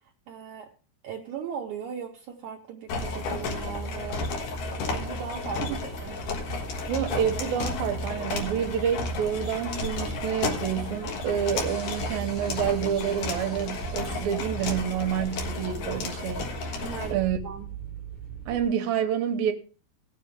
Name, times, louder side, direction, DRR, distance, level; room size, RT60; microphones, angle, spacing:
voice 1, 0.3-0.7 1.0-4.3 4.9-6.2 16.8-17.7, right 7 dB, 90° right, 1.7 m, -38 dB
sound 1, 2.9-17.1, left 2 dB, 65° left, 2.7 m, -32 dB
sound 2, 5.7-18.7, right 6 dB, 40° left, 2.4 m, -44 dB
voice 2, 6.9-16.9 17.1-17.4 18.5-19.5, right 9 dB, 75° right, 2.5 m, -28 dB
17.0 x 7.2 x 3.5 m
omnidirectional pair, 4.7 m